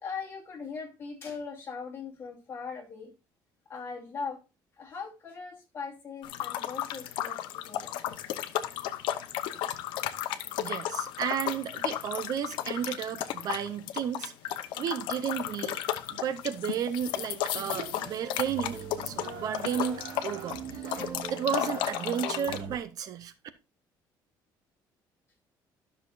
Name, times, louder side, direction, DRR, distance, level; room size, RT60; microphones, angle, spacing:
voice 1, 0.0-3.1 3.7-4.4 4.8-8.0, left 5 dB, 30° left, 2.5 m, -40 dB
sound 1, 6.2-22.6, left 12 dB, 85° left, 0.8 m, -34 dB
voice 2, 10.6-14.3 14.8-15.8 16.1-18.8 19.0-23.3, right 8 dB, 50° right, 0.6 m, -33 dB
sound 2, 17.5-22.8, right 6 dB, 75° right, 1.8 m, -41 dB
12.5 x 6.5 x 2.5 m
cardioid pair, 155°, 8 cm